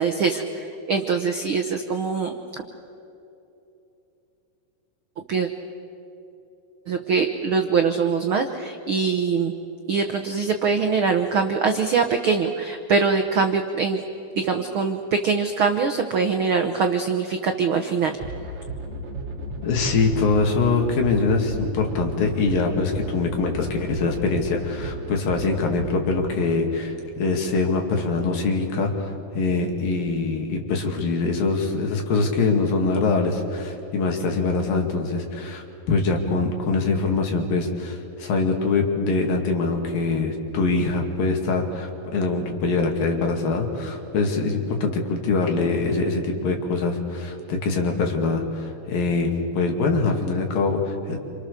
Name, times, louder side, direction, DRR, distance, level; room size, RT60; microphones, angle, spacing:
voice 1, 0.0-2.6 5.3-5.5 6.9-9.5 9.9-14.0 14.3-18.1, right 5 dB, 85° right, 5 dB, 1.1 m, -23 dB
sound 1, 18.1-26.0, equal, 45° right, 2.7 m, -34 dB
voice 2, 19.6-51.2, left 3 dB, 85° left, 2 dB, 4.2 m, -23 dB
27.5 x 27.0 x 6.9 m, 2.9 s
omnidirectional pair, 3.9 m